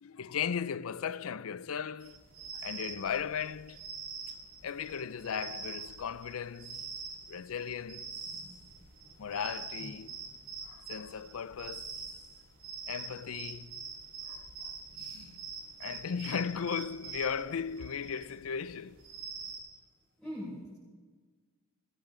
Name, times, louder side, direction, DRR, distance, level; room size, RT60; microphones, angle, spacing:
voice 1, 0.0-2.2 2.6-3.8 4.6-6.9 7.3-8.1 9.2-10.2 10.6-12.0 12.9-13.8 14.3-14.7 15.1-15.4 15.8-19.1, left 7 dB, 75° left, 0.5 m, -37 dB
sound 1, 2.0-19.6, right 5 dB, 90° right, 4.8 m, -44 dB
voice 2, 8.3-8.6 9.0-9.2 9.8-9.9 14.9-15.3 20.2-20.8, equal, ahead, 5.4 m, -44 dB
21.0 x 17.5 x 3.8 m
head